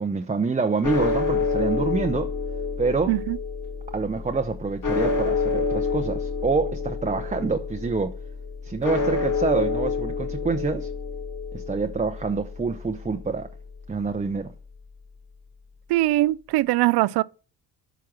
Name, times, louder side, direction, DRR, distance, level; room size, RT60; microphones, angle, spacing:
voice 1, 0.0-2.3 2.8-3.2 3.9-8.1 8.6-10.9 11.5-13.5 13.9-14.5, right 4 dB, 15° right, 0.7 m, -26 dB
sound 1, 0.8-15.1, left 4 dB, 40° left, 2.1 m, -29 dB
voice 2, 3.1-3.4 15.9-17.2, right 17 dB, 55° right, 0.5 m, -21 dB
9.1 x 5.8 x 6.1 m
hypercardioid pair, 45°, 48 cm